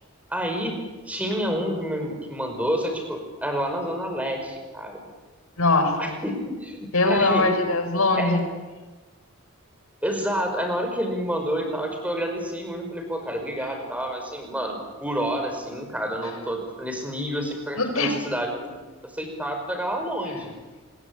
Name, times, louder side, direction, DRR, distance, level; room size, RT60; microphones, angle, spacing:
voice 1, 0.3-0.8 1.1-5.0 6.0-7.6 8.2-8.4 10.0-18.7 19.0-20.5, equal, 5° right, 4 dB, 5.3 m, -29 dB
voice 2, 5.6-6.2 6.9-8.5 17.8-18.2, left 2 dB, 85° left, 8 dB, 4.6 m, -22 dB
26.5 x 21.5 x 8.8 m, 1.2 s
head